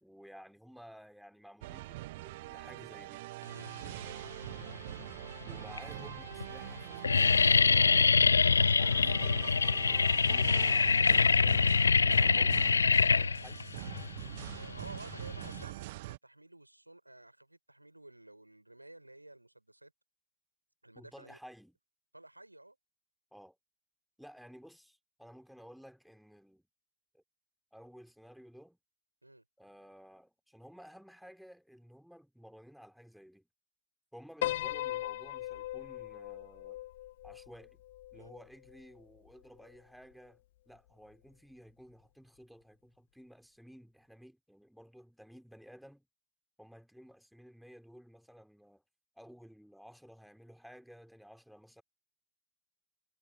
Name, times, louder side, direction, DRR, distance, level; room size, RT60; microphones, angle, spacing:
voice 1, 0.0-3.3 5.4-7.3 8.8-12.7 13.0-13.7 20.9-21.8 23.3-23.6 24.2-26.6 27.1-27.2 27.7-28.8 29.6-33.5 34.1-36.8 37.2-37.8 38.1-46.1 46.6-48.8 49.1-51.8, equal, ahead, 4.0 m, -55 dB
sound 1, 1.6-16.2, right 19 dB, 50° right, 1.7 m, -44 dB
sound 2, 4.4-5.0 5.7-5.8 6.1-6.4 6.7-15.6, left 5 dB, 75° left, 0.3 m, -25 dB
voice 2, 14.5-19.9 20.8-21.4 22.1-22.8 29.2-29.4 38.1-38.3, right 1 dB, 85° right, 5.3 m, -53 dB
Piano, 34.4-38.8, left 15 dB, 55° left, 1.6 m, -39 dB
figure-of-eight pair, 90°, 0 cm